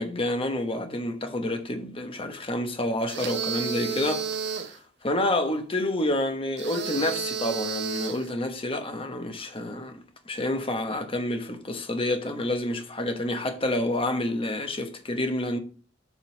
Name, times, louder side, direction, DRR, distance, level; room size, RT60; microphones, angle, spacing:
voice 1, 0.0-4.3 5.0-15.6, left 1 dB, 30° left, 1.0 m, -28 dB
sound 1, 3.1-4.8 6.6-8.3, right 7 dB, 60° right, 0.9 m, -31 dB
7.0 x 3.9 x 6.0 m
head